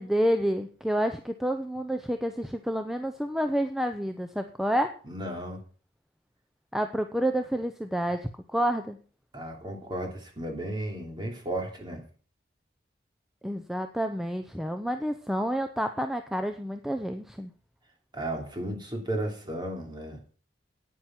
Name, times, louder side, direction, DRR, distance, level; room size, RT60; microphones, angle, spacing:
voice 1, 0.0-5.0 6.7-9.0 13.4-17.5, equal, ahead, 7 dB, 0.7 m, -29 dB
voice 2, 5.0-5.6 9.3-12.1 18.1-20.2, right 1 dB, 25° right, 2 dB, 3.1 m, -34 dB
10.0 x 9.4 x 6.0 m, 0.40 s
head